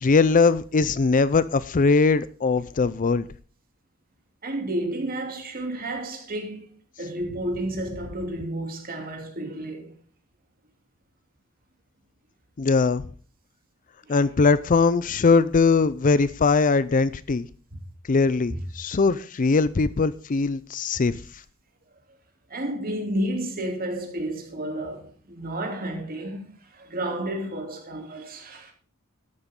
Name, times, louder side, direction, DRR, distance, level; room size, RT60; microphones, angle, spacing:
voice 1, 0.0-3.3 12.6-13.0 14.1-17.5 18.1-21.2, left 4 dB, 35° left, 0.5 m, -21 dB
voice 2, 4.4-6.7 7.0-9.9 14.1-14.2 18.5-18.6 22.5-28.7, right 1 dB, 40° right, 2.9 m, -31 dB
13.0 x 10.5 x 3.7 m
head